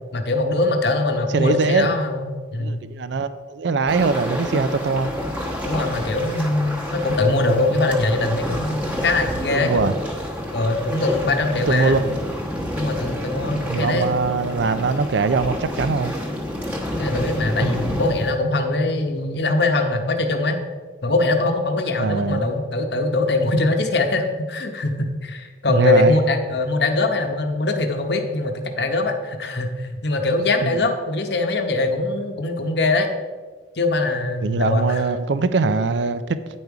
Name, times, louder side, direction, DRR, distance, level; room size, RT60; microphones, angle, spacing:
voice 1, 0.1-2.8 5.6-10.0 10.5-12.0 12.8-14.5 17.0-20.6 21.0-33.1 33.7-35.0, left 2 dB, 60° left, 5 dB, 0.9 m, -22 dB
voice 2, 1.3-1.9 2.6-5.1 9.5-9.9 11.5-12.1 13.7-16.1 17.6-17.8 22.0-22.5 25.7-26.2 30.6-30.8 34.4-36.2, right 4 dB, 70° right, 13 dB, 0.4 m, -21 dB
sound 1, 3.9-18.3, left 1 dB, 10° right, 1.0 m, -29 dB
9.4 x 5.3 x 4.6 m, 1.4 s
head